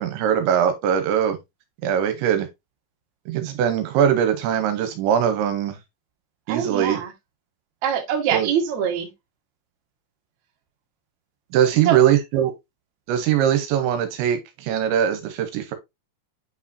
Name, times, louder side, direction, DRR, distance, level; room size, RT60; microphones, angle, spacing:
voice 1, 0.0-1.4 1.8-2.5 3.3-5.8 6.5-7.0 8.3-8.5 11.5-12.5 13.1-15.7, right 9 dB, 80° right, 3.0 m, -21 dB
voice 2, 6.5-7.1 7.8-9.1 11.9-12.0, right 8 dB, 60° right, 2.0 m, -23 dB
8.7 x 4.8 x 2.7 m
omnidirectional pair, 5.5 m